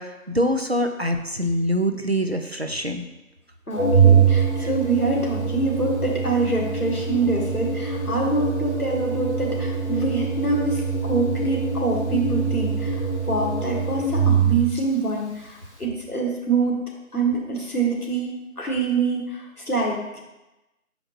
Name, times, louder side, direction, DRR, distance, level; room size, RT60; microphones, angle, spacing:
voice 1, 0.0-3.1 4.6-4.7, equal, 45° right, 5 dB, 0.5 m, -24 dB
voice 2, 3.7-13.0 13.3-16.8 17.1-18.3 18.6-20.2, right 3 dB, 90° left, -2 dB, 1.9 m, -25 dB
Organ, 3.8-14.8, right 5 dB, 50° left, 0.9 m, -23 dB
6.3 x 5.0 x 3.1 m, 1.0 s
figure-of-eight pair, 170°, 43 cm